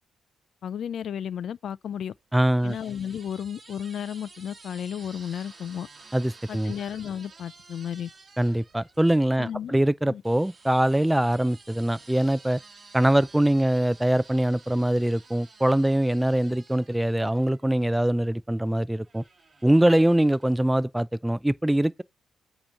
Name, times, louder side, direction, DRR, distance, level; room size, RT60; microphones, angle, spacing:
voice 1, 0.6-2.1 2.6-5.9 6.5-8.1 9.4-9.8 10.1-10.2, left 9 dB, 60° left, 0.4 m, -33 dB
sound 1, 1.9-9.3 10.2-18.1 19.0-20.6, right 4 dB, 30° right, 1.5 m, -52 dB
voice 2, 2.3-2.8 6.1-6.7 8.4-12.6 12.9-19.2 19.6-22.0, right 1 dB, 5° right, 0.4 m, -23 dB
8.6 x 3.0 x 6.3 m
cardioid pair, 90°, 0 cm